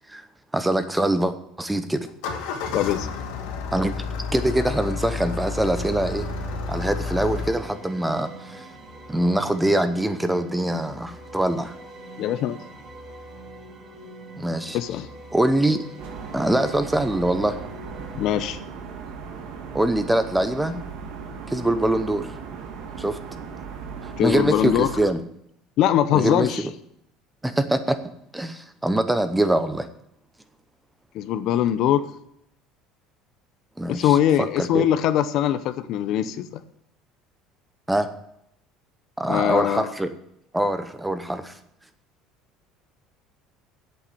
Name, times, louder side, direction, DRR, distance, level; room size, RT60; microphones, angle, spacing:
voice 1, 0.5-2.1 3.7-4.0 4.3-6.3 6.7-8.7 9.1-11.7 14.4-14.8 15.3-15.8 16.3-17.6 19.7-20.8 21.5-22.4 23.0-23.2 24.2-25.2 26.1-26.5 27.4-28.0 28.3-29.9 33.8-34.8 37.9-38.1 39.2-40.1 40.5-41.5, right 1 dB, 5° right, 11 dB, 0.8 m, -23 dB
Engine starting, 2.1-7.5, left 4 dB, 80° left, 2.3 m, -30 dB
voice 2, 2.7-3.1 12.2-12.6 14.7-15.1 18.1-18.6 24.2-24.9 25.8-26.6 31.1-32.1 33.9-36.6 39.3-39.9, left 11 dB, 50° left, 13 dB, 0.8 m, -22 dB
sound 1, 5.8-18.6, right 1 dB, 30° right, 2.1 m, -43 dB
sound 2, 16.0-25.0, right 6 dB, 80° right, 2.0 m, -37 dB
8.4 x 8.1 x 8.7 m, 0.74 s
cardioid pair, 155°, 0 cm